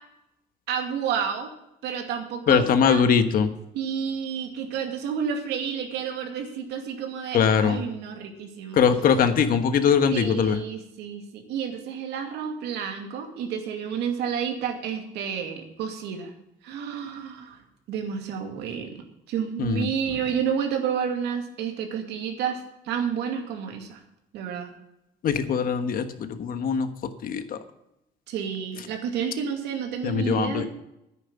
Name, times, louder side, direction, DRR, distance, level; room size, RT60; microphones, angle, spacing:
voice 1, 0.7-1.5 1.8-3.0 3.7-8.8 10.1-16.3 16.6-17.6 17.9-22.6 22.8-24.0 24.3-24.7 28.3-30.7, right 7 dB, 85° right, 4 dB, 2.3 m, -30 dB
voice 2, 2.5-3.5 7.3-7.8 8.7-10.6 19.6-20.2 25.2-27.6 30.0-30.7, left 7 dB, 60° left, 9 dB, 1.3 m, -22 dB
10.0 x 9.2 x 7.0 m, 0.86 s
cardioid pair, 110°, 17 cm